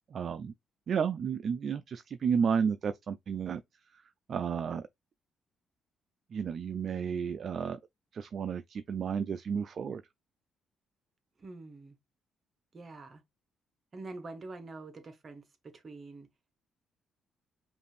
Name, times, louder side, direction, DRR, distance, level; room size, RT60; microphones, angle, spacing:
voice 1, 0.1-0.5 0.9-3.6 4.3-4.9 6.3-7.8 8.1-10.0, right 7 dB, 55° right, 0.3 m, -32 dB
voice 2, 11.4-12.0 12.7-13.2 13.9-16.3, right 3 dB, 40° right, 1.1 m, -46 dB
5.2 x 2.5 x 3.2 m
cardioid pair, 90°, 0 cm